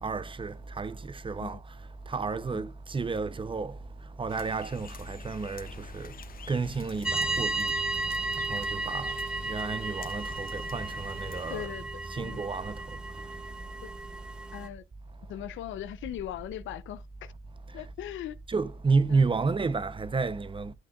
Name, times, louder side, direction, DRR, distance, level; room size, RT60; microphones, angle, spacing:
voice 1, 0.0-1.6 2.1-3.7 4.2-6.1 6.5-7.7 8.5-9.1 9.5-11.7 12.1-12.8 18.5-20.7, right 4 dB, 25° right, 0.7 m, -31 dB
sound 1, 4.3-11.7, left 6 dB, 45° left, 0.8 m, -48 dB
sound 2, 7.0-14.7, right 2 dB, 5° right, 1.2 m, -34 dB
voice 2, 11.5-11.8 12.2-12.4 13.8-13.9 14.5-14.8 15.3-17.3 17.7-18.4 19.1-19.3, left 12 dB, 80° left, 0.7 m, -39 dB
11.0 x 6.0 x 2.4 m
cardioid pair, 90°, 20 cm